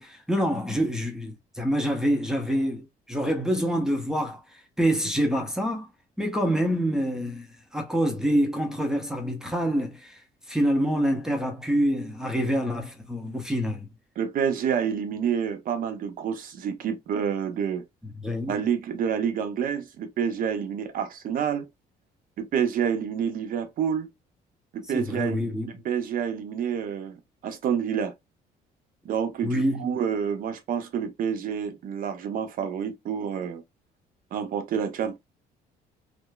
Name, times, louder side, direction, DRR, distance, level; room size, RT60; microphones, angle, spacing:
voice 1, 0.0-4.4 4.8-5.9 6.2-7.5 7.7-10.2 10.5-13.9 18.2-18.6 24.9-25.7 29.4-29.9, equal, 5° right, 0.7 m, -26 dB
voice 2, 14.2-17.9 18.5-21.7 22.4-24.1 24.7-28.1 29.0-33.6 34.3-35.2, right 7 dB, 55° right, 0.7 m, -28 dB
3.0 x 2.1 x 2.2 m
cardioid pair, 110°, 17 cm